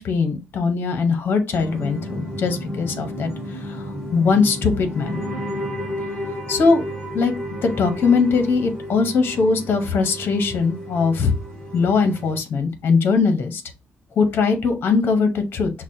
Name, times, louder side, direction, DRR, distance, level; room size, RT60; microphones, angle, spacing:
voice 1, 0.0-5.2 6.5-6.8 7.1-7.3 7.6-11.3 11.7-13.6 14.2-15.7, left 4 dB, 50° left, 6 dB, 0.7 m, -20 dB
sound 1, 1.5-12.4, equal, 10° left, 2.4 m, -32 dB
5.9 x 2.0 x 2.6 m, 0.26 s
wide cardioid pair, 170°, 5 cm